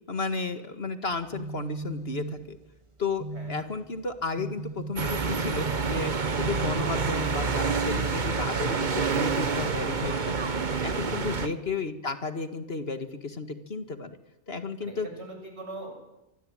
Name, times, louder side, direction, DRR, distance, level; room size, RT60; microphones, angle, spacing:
voice 1, 0.1-2.6 3.0-10.1 10.4-10.5 10.8-14.2 14.5-15.1, left 4 dB, 60° left, 9 dB, 2.1 m, -33 dB
sound 1, 1.1-8.0, right 4 dB, 25° right, 1.5 m, -39 dB
sound 2, 5.0-11.5, right 4 dB, 40° right, 1.3 m, -28 dB
voice 2, 14.8-15.9, right 2 dB, 65° right, 2 dB, 8.3 m, -41 dB
26.0 x 24.5 x 9.0 m, 0.94 s
omnidirectional pair, 1.2 m